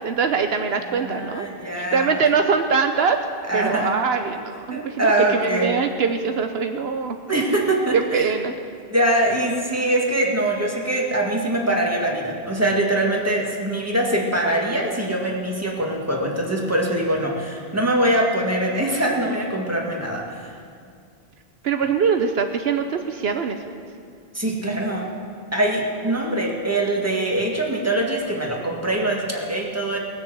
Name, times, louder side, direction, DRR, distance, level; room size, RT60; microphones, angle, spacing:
voice 1, 0.0-1.5 1.8-3.2 3.5-7.2 7.9-8.5 21.6-23.6, right 5 dB, 75° right, 6 dB, 1.0 m, -22 dB
voice 2, 0.7-2.1 3.5-4.0 4.7-5.8 7.3-8.3 8.9-20.5 24.3-25.1 25.5-30.0, right 1 dB, 15° right, -1 dB, 2.0 m, -23 dB
19.5 x 6.9 x 7.9 m, 2.3 s
omnidirectional pair, 1.1 m